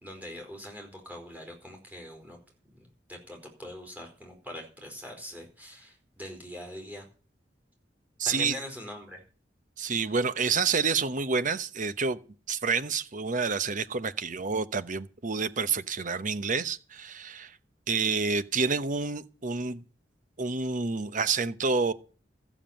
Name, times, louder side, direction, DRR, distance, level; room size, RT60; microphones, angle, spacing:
voice 1, 0.0-2.4 2.7-2.8 3.1-7.1 8.2-9.2 9.9-10.0, equal, 10° right, 4.7 m, -42 dB
voice 2, 8.2-8.6 9.8-12.2 12.5-17.6 17.9-19.8 20.4-21.9, right 4 dB, 45° right, 0.9 m, -28 dB
14.0 x 7.3 x 8.9 m
head